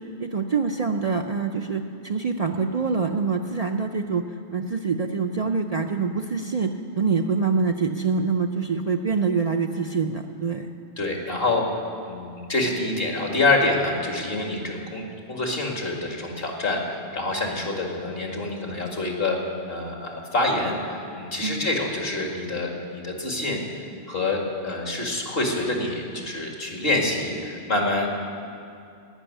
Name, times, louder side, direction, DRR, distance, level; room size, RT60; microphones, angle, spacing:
voice 1, 0.0-4.2 4.5-10.7 21.4-21.7, right 4 dB, 45° right, 4 dB, 0.5 m, -25 dB
voice 2, 11.0-11.7 12.1-19.4 19.7-23.6 24.1-28.1, left 2 dB, 60° left, 0 dB, 2.3 m, -26 dB
17.5 x 6.3 x 9.9 m, 2.5 s
omnidirectional pair, 1.1 m